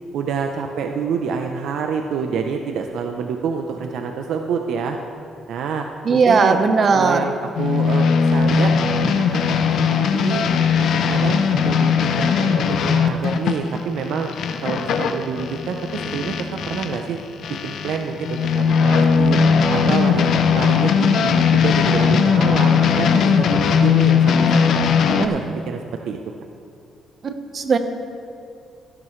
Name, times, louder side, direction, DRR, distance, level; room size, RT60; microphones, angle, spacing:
voice 1, 0.1-5.0 5.5-6.6 6.9-8.7 9.0-10.5 10.8-14.3 14.6-17.2 17.6-19.4 19.7-20.3 20.5-24.8 25.1-25.8 26.1-26.3, right 6 dB, 75° right, 4 dB, 0.7 m, -27 dB
voice 2, 6.0-7.3 27.2-27.8, right 4 dB, 50° right, 7 dB, 1.1 m, -17 dB
sound 1, 7.5-17.0 17.4-25.3, left 6 dB, 70° left, 0.8 m, -18 dB
16.0 x 12.0 x 3.2 m, 2.4 s
cardioid pair, 90°, 0 cm